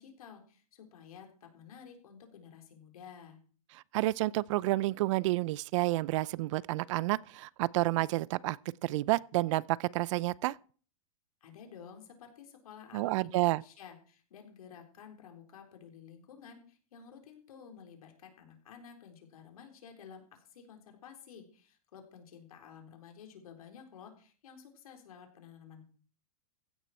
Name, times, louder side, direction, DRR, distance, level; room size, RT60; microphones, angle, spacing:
voice 1, 0.0-3.4 11.4-25.8, left 7 dB, 80° left, 4.0 m, -52 dB
voice 2, 3.7-8.6 8.8-10.6 12.9-13.6, right 18 dB, 60° right, 0.5 m, -30 dB
15.5 x 11.0 x 4.4 m
hypercardioid pair, 130°, 18 cm